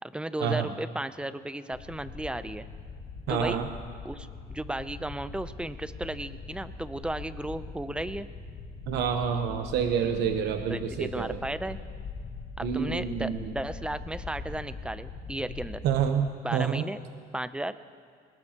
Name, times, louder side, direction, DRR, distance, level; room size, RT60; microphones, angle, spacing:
voice 1, 0.0-2.7 3.3-3.6 4.0-8.3 10.7-11.8 12.6-15.8 16.4-17.0 17.3-17.8, right 1 dB, 5° right, 12 dB, 0.6 m, -34 dB
sound 1, 1.7-16.1, left 4 dB, 65° left, 1.8 m, -42 dB
voice 2, 3.3-3.6 8.9-11.4 12.6-13.4 15.8-16.3 16.5-16.8, right 7 dB, 80° right, 5 dB, 0.9 m, -28 dB
21.0 x 19.5 x 2.9 m, 2.2 s
cardioid pair, 110°, 17 cm